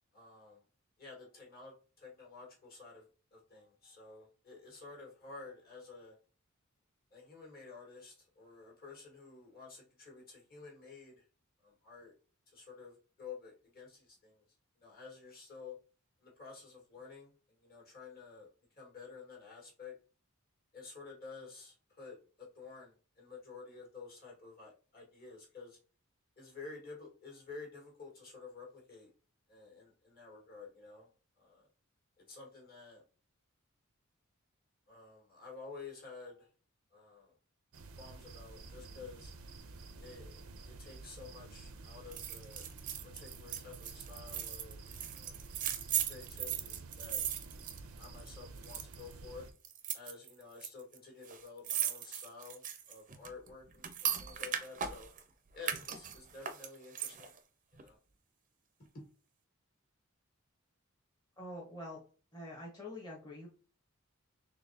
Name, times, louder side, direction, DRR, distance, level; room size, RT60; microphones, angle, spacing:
voice 1, 0.1-0.6 1.0-6.2 7.1-11.2 11.6-12.1 12.5-14.4 14.8-15.8 16.2-18.5 18.8-19.9 20.7-25.8 26.4-29.1 29.5-31.1 31.4-31.7 32.2-33.0 34.9-36.5 36.9-37.3 38.0-39.3 40.0-42.6 43.0-44.8 45.1-45.4 46.1-47.2 48.0-49.5 49.9-55.1 55.5-57.3 57.7-58.0 58.9-59.0, left 4 dB, 45° left, -2 dB, 1.6 m, -51 dB
sound 1, 37.7-49.5, right 3 dB, 85° right, 0.6 m, -51 dB
sound 2, 42.1-48.3 48.6-49.1 49.6-50.7 50.9-51.0 51.2-55.2 55.6-57.4 57.8-57.9, right 9 dB, 40° right, 0.5 m, -38 dB
voice 2, 61.4-62.0 62.3-63.5, left 1 dB, 20° left, -4 dB, 0.9 m, -45 dB
3.9 x 3.1 x 2.7 m, 0.37 s
head